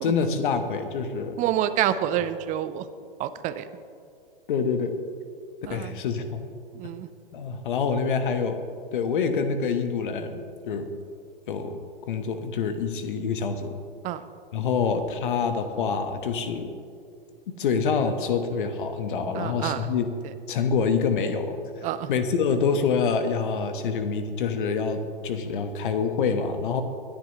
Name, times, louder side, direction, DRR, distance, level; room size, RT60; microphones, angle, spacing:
voice 1, 0.0-1.4 4.5-4.9 5.7-6.5 7.3-8.6 8.9-10.4 10.7-10.9 11.5-11.8 12.1-13.7 14.5-16.8 17.6-20.1 20.5-21.6 22.1-26.8, left 5 dB, 60° left, 8 dB, 1.3 m, -26 dB
voice 2, 1.4-2.9 3.2-3.7 5.7-6.0 6.7-7.1 14.0-14.2 19.3-19.9 21.8-22.1, right 11 dB, 25° right, 12 dB, 0.6 m, -28 dB
21.0 x 10.5 x 3.1 m, 2.3 s
figure-of-eight pair, 110°, 29 cm